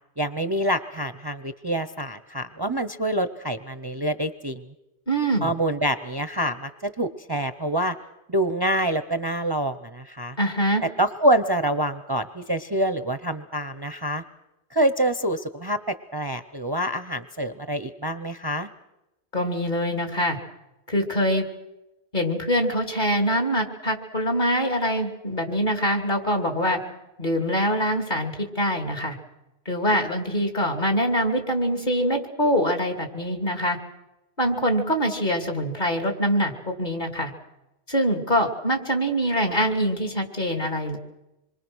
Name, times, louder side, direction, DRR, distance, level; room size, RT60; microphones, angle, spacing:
voice 1, 0.2-4.7 5.4-8.0 8.3-10.4 11.0-14.2 14.7-18.7, right 1 dB, 25° right, 10 dB, 0.8 m, -26 dB
voice 2, 5.1-5.5 10.4-10.8 19.3-20.4 20.9-21.4 22.1-26.8 27.2-29.1 29.6-33.8 34.4-37.3 37.9-41.0, equal, 50° left, 4 dB, 3.0 m, -24 dB
26.5 x 23.0 x 6.3 m, 0.95 s
omnidirectional pair, 1.0 m